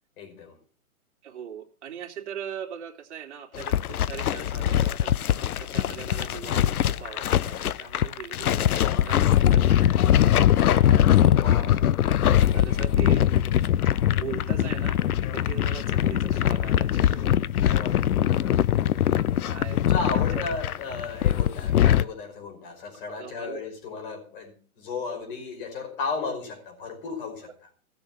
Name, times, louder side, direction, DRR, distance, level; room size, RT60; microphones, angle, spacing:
voice 1, 0.2-0.6 11.3-11.9 12.3-12.6 17.6-18.6 19.7-27.5, left 4 dB, 35° left, 5.2 m, -35 dB
voice 2, 1.2-11.0 12.2-13.3 14.1-15.0 15.3-17.4 18.5-18.6 19.4-19.8 20.1-20.4 23.1-23.6, right 9 dB, 50° right, 3.0 m, -41 dB
sound 1, 3.5-22.0, left 11 dB, 80° left, 0.7 m, -22 dB
16.5 x 7.1 x 7.4 m
hypercardioid pair, 155°, 44 cm